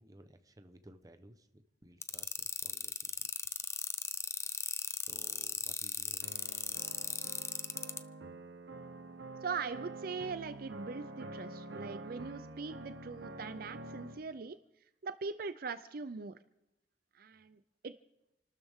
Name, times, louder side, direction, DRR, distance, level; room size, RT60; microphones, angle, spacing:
voice 1, 0.0-3.5 5.0-7.1, right 1 dB, 20° right, 8 dB, 1.0 m, -59 dB
sound 1, 2.0-8.0, left 5 dB, 15° left, 0.5 m, -37 dB
sound 2, 6.2-14.2, right 2 dB, 80° right, 1.1 m, -47 dB
voice 2, 9.4-14.6 15.0-16.4 17.2-17.9, right 4 dB, 55° right, 12 dB, 0.5 m, -41 dB
29.0 x 12.5 x 3.7 m, 0.90 s
head